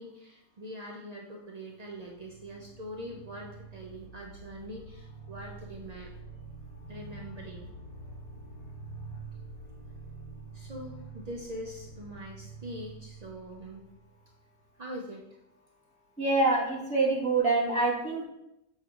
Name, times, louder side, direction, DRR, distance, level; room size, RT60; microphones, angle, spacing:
voice 1, 0.0-6.1 6.9-7.7 8.3-8.4 10.5-13.9 14.8-15.2, equal, 65° right, -1 dB, 0.4 m, -43 dB
sound 1, 1.8-14.6, right 3 dB, 85° left, 1.6 m, -47 dB
voice 2, 16.2-18.2, right 3 dB, 5° left, -6 dB, 1.5 m, -26 dB
7.0 x 5.5 x 2.4 m, 0.85 s
omnidirectional pair, 1.6 m